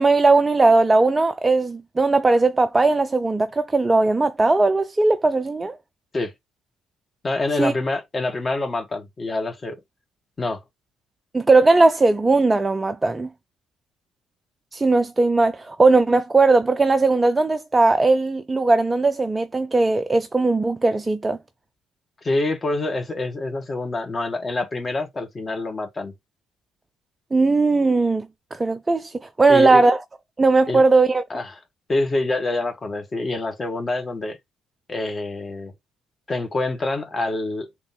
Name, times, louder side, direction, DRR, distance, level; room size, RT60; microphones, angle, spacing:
voice 1, 0.0-5.8 7.6-7.7 11.3-13.3 14.7-21.4 27.3-30.0 30.4-31.2, right 3 dB, 20° right, 0.6 m, -18 dB
voice 2, 7.2-9.8 10.4-10.6 22.2-26.1 29.5-29.8 30.7-30.8 31.3-31.5 31.9-34.4 34.9-35.7 36.3-37.7, left 2 dB, 30° left, 1.9 m, -26 dB
3.7 x 3.0 x 3.9 m
figure-of-eight pair, 50°, 0 cm